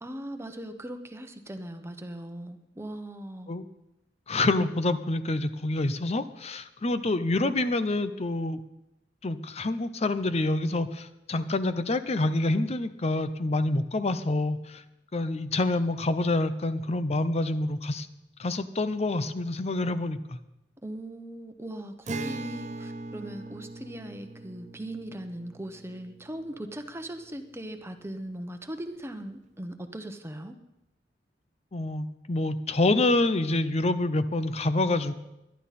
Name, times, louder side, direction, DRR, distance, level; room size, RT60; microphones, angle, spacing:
voice 1, 0.0-3.5 20.8-30.5, right 1 dB, 15° right, 7 dB, 1.0 m, -39 dB
voice 2, 4.3-8.6 9.2-14.8 15.1-18.1 18.4-20.4 31.7-35.1, left 2 dB, 35° left, 12 dB, 0.7 m, -27 dB
Acoustic guitar, 22.1-27.5, right 2 dB, 40° right, 0.6 m, -41 dB
21.0 x 11.5 x 4.2 m, 0.91 s
head